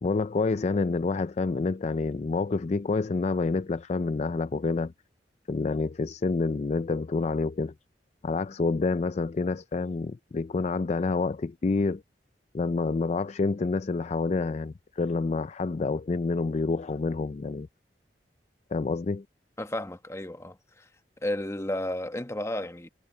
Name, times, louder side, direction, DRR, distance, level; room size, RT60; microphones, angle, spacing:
voice 1, 0.0-4.9 5.5-7.7 8.2-12.0 12.5-17.7 18.7-19.2, left 3 dB, 40° left, 0.4 m, -28 dB
voice 2, 19.6-20.9 21.2-22.9, left 1 dB, 15° left, 1.1 m, -33 dB
head